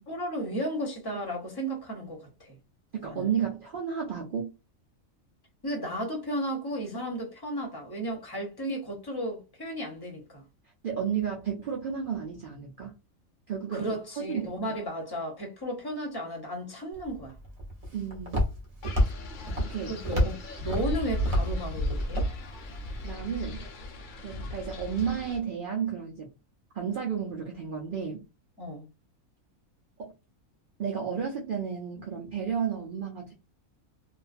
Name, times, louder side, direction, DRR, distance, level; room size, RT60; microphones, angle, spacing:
voice 1, 0.1-2.6 3.0-3.3 5.6-10.4 13.7-17.3 19.9-22.3 28.6-28.9, right 1 dB, 20° left, 0.7 m, -34 dB
voice 2, 3.0-4.6 10.8-12.9 13.5-13.9 14.2-14.5 17.9-18.4 18.9-19.0 19.6-20.0 23.0-23.7 24.2-26.3 26.7-28.2 30.0-30.1 30.8-33.3, right 7 dB, 70° right, 0.5 m, -32 dB
Walk footsteps, 16.9-23.1, equal, 35° right, 0.7 m, -31 dB
Wind, 18.8-25.4, left 1 dB, 55° left, 0.5 m, -35 dB
2.5 x 2.3 x 2.4 m
omnidirectional pair, 1.5 m